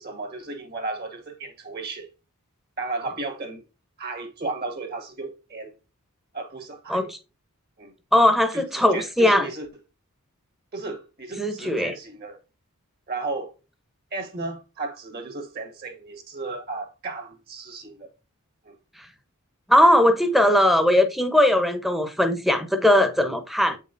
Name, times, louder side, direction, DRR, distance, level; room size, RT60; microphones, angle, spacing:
voice 1, 0.0-2.1 2.8-3.6 4.0-5.7 6.3-7.1 7.8-7.9 8.5-9.7 10.7-12.4 13.1-13.5 14.1-18.1 18.6-18.8, right 3 dB, 45° right, 1.6 m, -34 dB
voice 2, 8.1-9.5 11.4-11.9 19.7-23.8, left 1 dB, ahead, 0.8 m, -19 dB
8.2 x 5.3 x 2.6 m
head